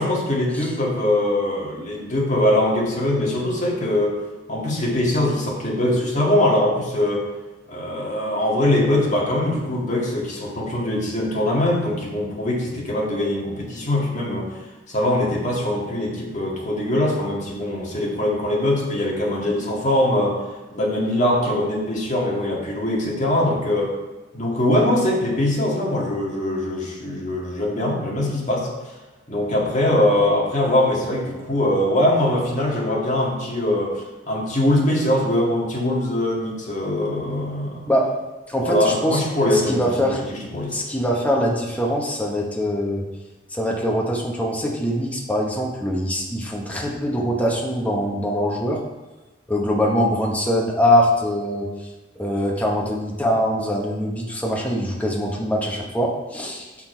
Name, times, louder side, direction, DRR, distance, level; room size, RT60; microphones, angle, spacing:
voice 1, 0.0-4.2 4.5-7.2 7.7-14.5 14.9-20.4 20.7-23.9 24.3-28.7 29.3-37.9 38.6-40.8, left 1 dB, 40° left, -4 dB, 1.9 m, -22 dB
voice 2, 38.5-39.2 39.5-40.2 40.7-43.1 43.5-48.8 49.5-51.7 52.2-56.7, equal, 10° left, -2 dB, 1.0 m, -23 dB
6.7 x 6.0 x 4.5 m, 1.2 s
head